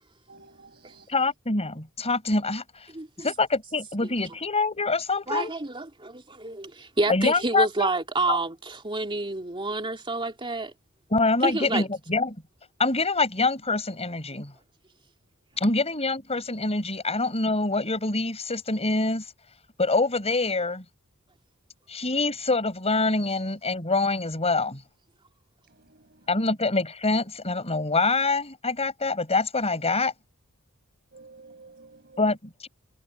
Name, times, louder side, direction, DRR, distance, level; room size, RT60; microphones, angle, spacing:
voice 1, 0.3-1.0 25.9-26.0 31.1-32.3, right 3 dB, 50° right, 7.2 m, -50 dB
voice 2, 1.1-2.9 3.2-5.5 7.1-7.9 8.3-8.4 11.1-12.4 12.8-14.5 15.6-19.2 19.8-20.8 21.9-24.8 26.3-30.1 32.2-32.7, left 3 dB, 30° left, 5.4 m, -25 dB
voice 3, 2.9-3.3 5.3-10.7 11.4-11.9, right 2 dB, 25° right, 2.8 m, -29 dB
head